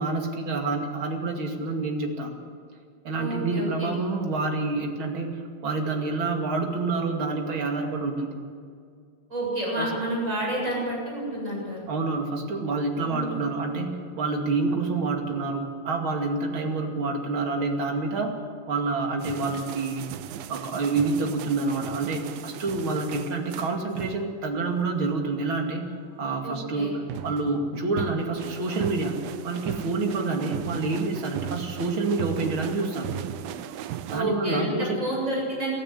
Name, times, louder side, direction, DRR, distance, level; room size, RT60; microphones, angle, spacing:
voice 1, 0.0-2.3 3.0-8.3 9.8-9.9 11.9-18.3 18.7-20.0 20.5-25.8 26.2-29.2 29.4-33.1 34.1-35.0, right 3 dB, 40° right, 2 dB, 2.7 m, -28 dB
voice 2, 3.2-4.0 9.3-11.9 13.0-13.5 26.4-26.9 34.1-35.7, right 1 dB, 20° right, -3 dB, 8.4 m, -29 dB
sound 1, 19.2-24.4 27.1-34.2, right 10 dB, 80° right, 2.6 m, -37 dB
24.0 x 14.5 x 8.5 m, 2.2 s
omnidirectional pair, 4.3 m